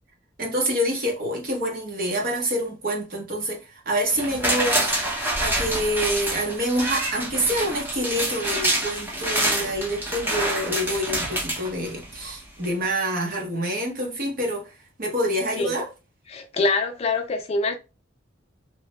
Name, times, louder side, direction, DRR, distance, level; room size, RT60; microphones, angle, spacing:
voice 1, 0.4-5.0 5.4-15.9, equal, 45° right, 0.9 m, -27 dB
sound 1, 4.1-12.2 12.6-12.7, right 1 dB, 10° right, 0.8 m, -27 dB
voice 2, 16.3-17.7, left 3 dB, 30° left, 0.4 m, -24 dB
3.1 x 2.1 x 3.0 m
head